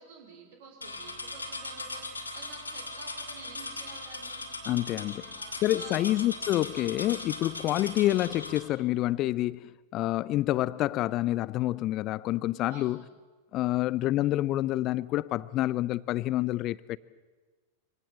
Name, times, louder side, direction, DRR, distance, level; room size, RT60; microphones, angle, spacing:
voice 1, 0.0-2.1 2.3-4.4 5.2-6.3 12.7-13.0, right 4 dB, 55° right, 4.3 m, -50 dB
sound 1, 0.8-8.6, left 2 dB, 80° left, 2.6 m, -39 dB
voice 2, 4.7-5.3 5.6-13.0 13.5-17.0, left 15 dB, 35° left, 0.6 m, -28 dB
25.0 x 17.5 x 7.6 m
figure-of-eight pair, 90°, 0 cm